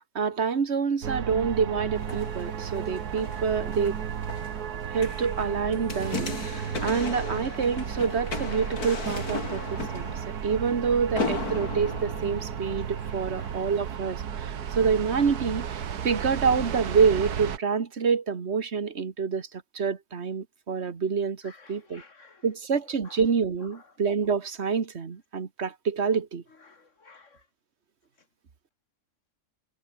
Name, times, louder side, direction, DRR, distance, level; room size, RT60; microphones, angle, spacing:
voice 1, 0.0-4.0 4.9-19.5 19.8-22.0 22.4-26.4, right 5 dB, 45° right, 1.8 m, -27 dB
sound 1, 1.0-17.6, right 8 dB, 90° right, 1.8 m, -34 dB
sound 2, 2.0-13.2 13.8-13.9, left 3 dB, 80° left, 3.9 m, -37 dB
voice 2, 12.9-13.6 21.4-22.4 23.0-23.2 23.7-23.8 26.6-27.4, left 4 dB, 55° left, 2.5 m, -53 dB
omnidirectional pair, 1.6 m